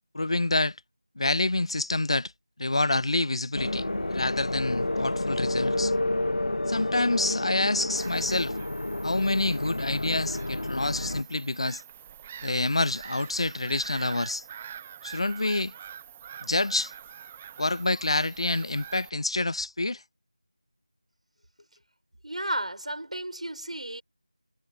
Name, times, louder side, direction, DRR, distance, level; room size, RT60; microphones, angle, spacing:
voice 1, 0.1-0.8 1.2-2.3 2.6-5.9 6.7-8.5 9.0-11.8 12.4-14.4 15.0-15.7 16.4-16.9 17.6-20.0, left 2 dB, 55° left, 0.4 m, -27 dB
sound 1, 3.5-11.2, left 1 dB, 75° left, 1.0 m, -30 dB
Bird vocalization bird call bird song / Gull seagull, 8.0-19.1, right 9 dB, 5° right, 0.4 m, -45 dB
voice 2, 22.2-24.0, right 1 dB, 80° right, 4.8 m, -33 dB
figure-of-eight pair, 175°, 4 cm